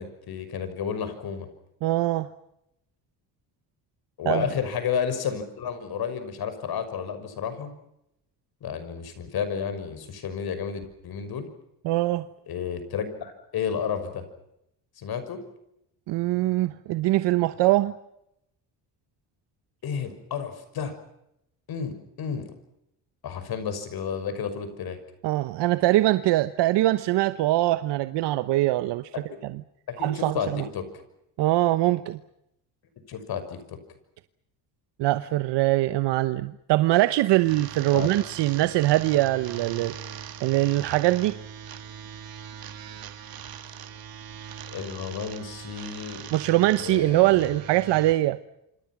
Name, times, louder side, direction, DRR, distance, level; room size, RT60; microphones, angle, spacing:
voice 1, 0.0-1.5 4.2-7.7 8.6-11.5 12.5-14.2 15.0-15.4 19.8-20.9 21.7-22.5 23.2-25.0 29.3-29.4 29.9-30.9 33.1-33.8 37.9-38.1 44.7-46.2 46.8-47.6, left 7 dB, 60° left, 6.1 m, -31 dB
voice 2, 1.8-2.3 4.2-4.4 11.8-12.2 16.1-17.9 25.2-29.1 29.4-29.6 30.0-30.6 31.4-32.2 35.0-39.9 40.4-41.4 46.3-48.4, right 16 dB, 80° right, 1.1 m, -23 dB
sound 1, 37.4-48.1, right 8 dB, 60° right, 2.6 m, -41 dB
28.0 x 26.5 x 6.1 m
cardioid pair, 105°, 41 cm